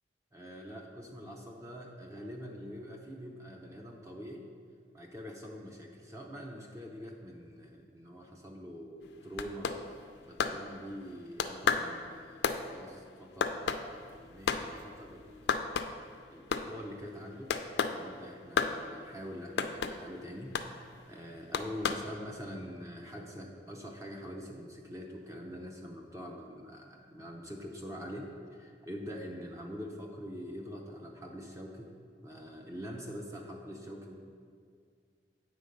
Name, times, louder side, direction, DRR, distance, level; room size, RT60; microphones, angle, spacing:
voice 1, 0.3-4.5 4.9-9.7 10.3-15.5 16.3-17.6 17.8-31.9 32.2-34.2, equal, 20° right, 0 dB, 0.5 m, -44 dB
sound 1, 9.0-11.1 11.4-14.7 15.0-15.1 15.3-16.1 16.4-16.9 17.5-18.0 18.6-18.8 19.6-20.0 20.5-20.7 21.5-22.1, left 6 dB, 80° left, 0.4 m, -31 dB
8.0 x 3.7 x 5.2 m, 2.1 s
head